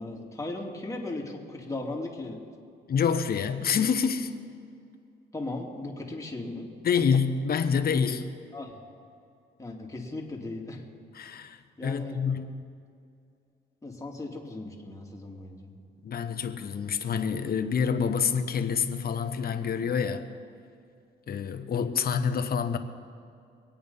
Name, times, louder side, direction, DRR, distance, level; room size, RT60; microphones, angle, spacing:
voice 1, 0.0-2.4 5.3-7.0 8.5-8.8 9.6-10.8 11.8-12.2 13.8-15.8, left 2 dB, 15° left, 0 dB, 2.4 m, -37 dB
voice 2, 2.9-4.3 6.8-8.3 11.1-12.6 16.0-20.3 21.3-22.8, left 6 dB, 50° left, 7 dB, 1.1 m, -27 dB
22.5 x 8.8 x 5.6 m, 2.4 s
cardioid pair, 90°, 20 cm